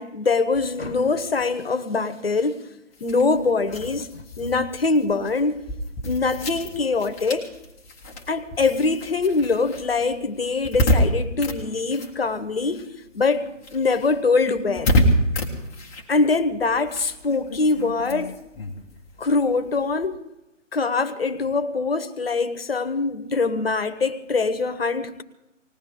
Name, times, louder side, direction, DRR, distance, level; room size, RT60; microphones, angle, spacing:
voice 1, 0.0-2.6 3.0-5.6 6.0-7.5 8.3-12.8 13.1-14.9 16.1-18.3 19.2-20.2 20.7-25.2, left 4 dB, 50° left, 12 dB, 1.3 m, -23 dB
sound 1, 2.9-12.8 13.1-20.1, equal, 10° left, 1.2 m, -28 dB
20.0 x 17.5 x 3.7 m, 0.94 s
figure-of-eight pair, 150°, 38 cm